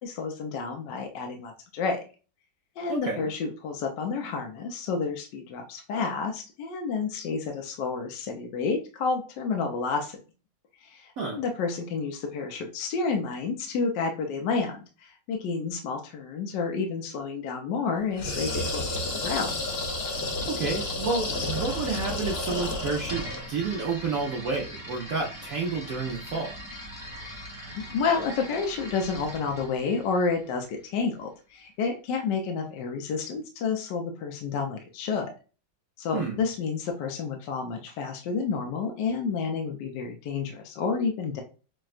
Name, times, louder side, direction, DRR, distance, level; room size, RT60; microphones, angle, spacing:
voice 1, 0.0-2.0 2.8-10.2 10.8-19.5 27.1-27.3 27.7-35.3 36.0-41.4, left 5 dB, 70° left, 3 dB, 1.2 m, -30 dB
voice 2, 2.9-3.3 11.2-11.4 20.5-26.6 36.1-36.4, right 4 dB, 65° right, -1 dB, 0.9 m, -30 dB
sound 1, 18.1-23.5, left 2 dB, 90° left, 0.5 m, -31 dB
sound 2, 23.0-30.9, equal, 30° left, 0.4 m, -41 dB
6.0 x 2.2 x 2.4 m, 0.34 s
omnidirectional pair, 2.2 m